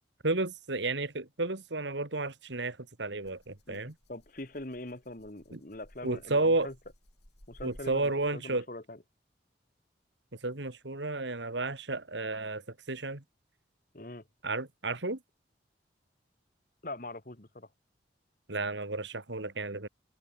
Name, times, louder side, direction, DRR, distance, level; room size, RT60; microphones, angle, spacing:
voice 1, 0.2-4.0 5.5-5.6 6.0-6.7 7.6-8.7 10.3-13.2 14.4-15.2 18.5-19.9, right 2 dB, 75° right, 2.3 m, -32 dB
Rattle (instrument), 3.2-8.6, equal, 60° left, 7.2 m, -59 dB
voice 2, 4.1-6.7 7.5-9.0 13.9-14.3 16.8-17.7, left 2 dB, 45° left, 1.9 m, -43 dB
open air
head